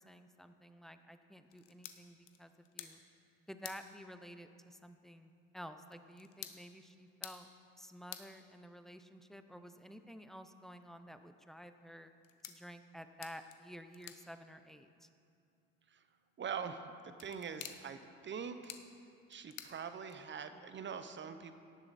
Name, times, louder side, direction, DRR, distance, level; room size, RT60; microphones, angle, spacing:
voice 1, 0.0-3.0 3.5-7.5 7.8-12.1 12.4-15.1 20.6-20.7, equal, ahead, 8 dB, 0.6 m, -52 dB
sound 1, 1.5-20.5, left 11 dB, 70° left, 1.0 m, -56 dB
voice 2, 16.4-18.8 19.3-21.6, right 6 dB, 35° right, 10 dB, 0.8 m, -44 dB
17.5 x 6.9 x 4.2 m, 2.6 s
supercardioid pair, 85°, 32 cm